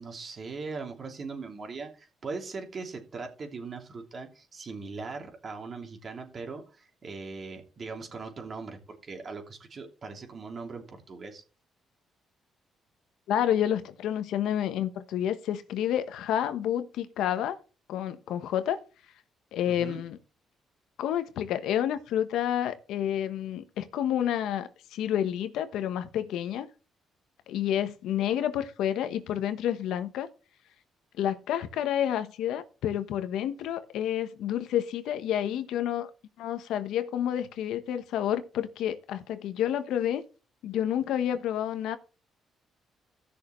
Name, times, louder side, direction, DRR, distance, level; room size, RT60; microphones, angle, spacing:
voice 1, 0.0-11.4 19.6-20.0, right 4 dB, 45° right, 2.9 m, -40 dB
voice 2, 13.3-17.6 17.9-18.8 19.5-20.2 21.0-26.7 27.5-30.3 31.2-36.1 36.4-40.2 40.6-42.0, left 10 dB, 85° left, 1.1 m, -29 dB
16.5 x 6.5 x 3.2 m
cardioid pair, 90°, 0 cm